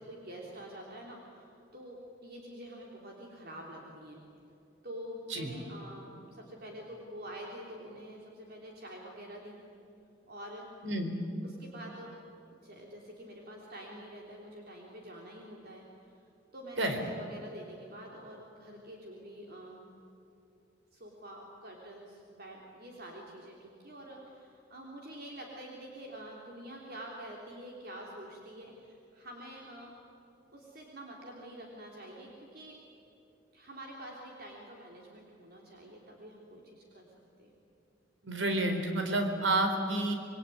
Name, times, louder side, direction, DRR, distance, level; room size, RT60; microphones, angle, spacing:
voice 1, 0.0-4.2 4.8-9.6 10.3-10.7 11.4-12.1 12.6-16.2 16.5-19.9 20.9-29.9 30.5-32.8 33.5-37.1 37.4-37.5, right 1 dB, 55° right, -1 dB, 3.5 m, -47 dB
voice 2, 10.8-11.1 16.8-17.0 38.2-40.1, right 2 dB, 80° right, 5 dB, 4.0 m, -30 dB
27.0 x 22.0 x 9.5 m, 2.8 s
head